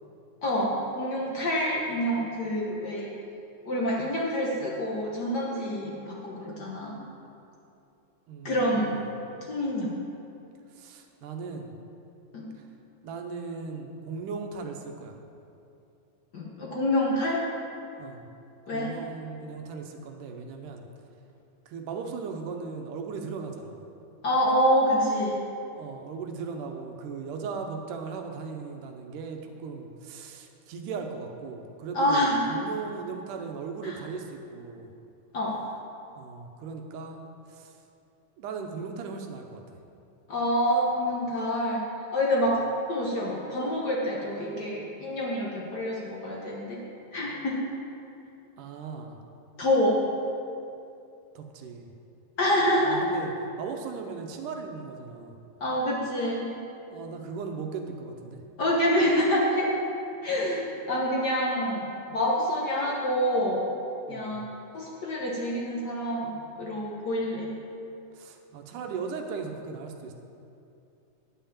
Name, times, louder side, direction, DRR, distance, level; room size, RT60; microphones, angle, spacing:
voice 1, 0.4-3.1 3.6-7.0 8.4-9.0 9.5-9.9 12.3-12.5 16.3-17.4 18.7-18.9 24.2-25.3 31.9-32.4 33.8-34.0 35.3-35.6 40.3-41.8 42.1-42.6 42.9-46.8 47.1-47.6 49.6-50.0 52.4-53.0 55.6-56.5 58.6-59.7 60.2-63.6 64.1-64.4 64.7-67.5, equal, 65° left, -3 dB, 1.0 m, -27 dB
voice 2, 8.3-9.0 10.7-11.7 13.0-15.2 18.0-18.3 18.7-20.9 21.7-23.8 25.7-34.9 36.2-37.7 38.4-39.8 48.6-49.2 51.4-51.9 52.8-55.4 56.9-58.5 64.1-64.4 68.1-70.1, right 5 dB, 85° right, 4 dB, 2.4 m, -38 dB
10.5 x 5.7 x 8.6 m, 2.7 s
omnidirectional pair, 3.6 m